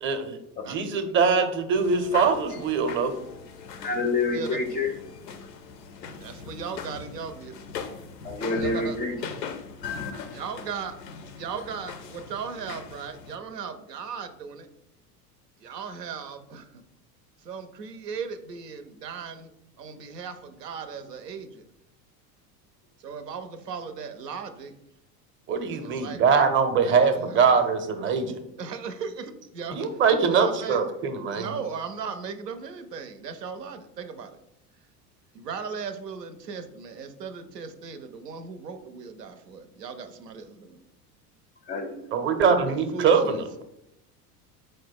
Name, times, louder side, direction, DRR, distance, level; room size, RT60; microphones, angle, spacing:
voice 1, 0.0-3.1 25.5-28.4 29.7-31.5 42.1-43.6, right 5 dB, 25° right, 8 dB, 0.6 m, -23 dB
sound 1, 1.8-13.4, left 6 dB, 85° left, 0.6 m, -40 dB
voice 2, 3.8-4.9 8.2-9.2 41.6-42.1, left 3 dB, 20° left, 4 dB, 0.4 m, -27 dB
voice 3, 6.1-7.6 8.6-9.0 10.3-11.0 11.3-14.7 15.6-16.8 17.4-19.5 19.8-21.7 23.0-24.7 25.8-26.4 26.8-27.4 28.6-29.9 30.3-30.8 31.3-34.4 35.3-40.8 42.7-43.4, right 6 dB, 90° right, 8 dB, 0.6 m, -37 dB
4.5 x 2.1 x 4.5 m, 0.81 s
hypercardioid pair, 80°, 48 cm